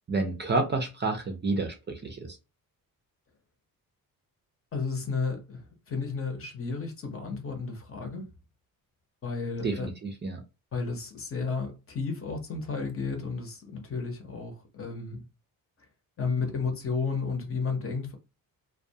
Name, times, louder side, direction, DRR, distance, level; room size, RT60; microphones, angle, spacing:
voice 1, 0.1-2.4 9.6-10.4, right 3 dB, 30° right, 0.5 m, -29 dB
voice 2, 4.7-8.2 9.2-9.9 10.7-15.2 16.2-18.1, left 4 dB, 40° left, 0.8 m, -32 dB
2.2 x 2.2 x 2.7 m
cardioid pair, 110°, 36 cm